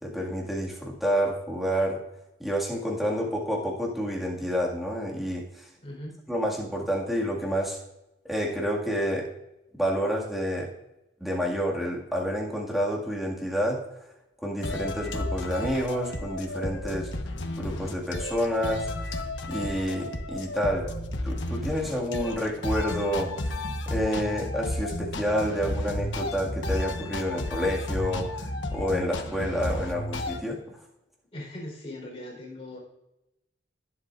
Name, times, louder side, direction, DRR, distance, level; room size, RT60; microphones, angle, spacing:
voice 1, 0.0-2.0 2.4-5.7 6.3-7.8 8.3-9.3 9.8-10.7 11.2-13.8 14.4-17.1 17.6-19.1 19.5-20.9 21.2-23.4 23.9-30.8, equal, ahead, -3 dB, 2.0 m, -29 dB
voice 2, 5.8-6.2 31.3-32.8, left 1 dB, 30° left, -1 dB, 4.0 m, -39 dB
sound 1, 14.6-30.4, left 1 dB, 80° left, 1.1 m, -32 dB
19.0 x 7.8 x 2.5 m, 0.91 s
head